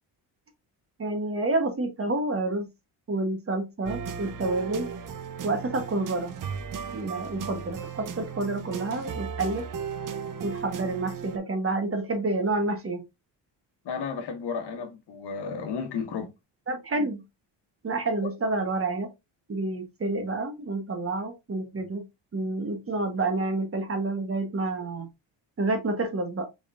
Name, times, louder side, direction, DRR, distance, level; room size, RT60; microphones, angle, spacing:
voice 1, 1.0-2.7 3.1-4.9 5.4-6.4 6.9-9.7 10.4-13.0 16.7-17.2 17.8-19.1 19.5-22.0 22.3-25.1 25.6-26.5, right 2 dB, 30° right, 1.0 m, -29 dB
sound 1, 3.8-11.4, right 7 dB, 45° right, 0.7 m, -36 dB
voice 2, 13.8-16.3, left 5 dB, 65° left, 1.2 m, -33 dB
3.8 x 3.7 x 2.4 m
cardioid pair, 100°, 44 cm